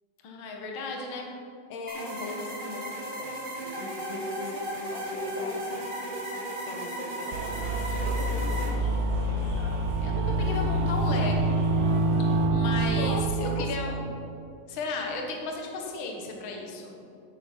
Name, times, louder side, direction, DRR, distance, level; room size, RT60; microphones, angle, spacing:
voice 1, 0.2-1.3 10.0-11.7 12.5-14.1 14.7-17.0, left 3 dB, 50° left, 1 dB, 1.7 m, -34 dB
voice 2, 1.7-5.9 6.6-8.9 12.9-14.0, left 3 dB, 65° left, 3 dB, 2.0 m, -40 dB
sound 1, 1.9-8.7, right 1 dB, 30° right, 1.0 m, -35 dB
sound 2, 7.2-12.5, left 1 dB, 35° left, 2.2 m, -41 dB
sound 3, 7.3-13.6, right 2 dB, 75° right, 1.5 m, -26 dB
10.5 x 8.7 x 4.4 m, 2.6 s
omnidirectional pair, 3.6 m